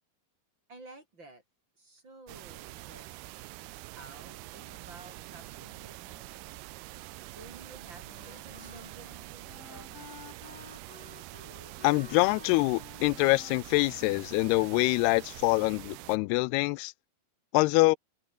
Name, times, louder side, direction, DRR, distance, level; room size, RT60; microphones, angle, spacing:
voice 1, 0.7-1.4 1.8-3.1 4.0-6.7 7.3-10.1, right 2 dB, 30° right, 7.5 m, -52 dB
sound 1, 2.3-16.2, right 19 dB, 85° right, 2.8 m, -46 dB
Wind instrument woodwind instrument, 8.0-15.1, left 5 dB, 60° left, 6.2 m, -52 dB
voice 2, 11.8-16.9 17.5-18.0, left 23 dB, 90° left, 2.6 m, -25 dB
omnidirectional pair, 4.5 m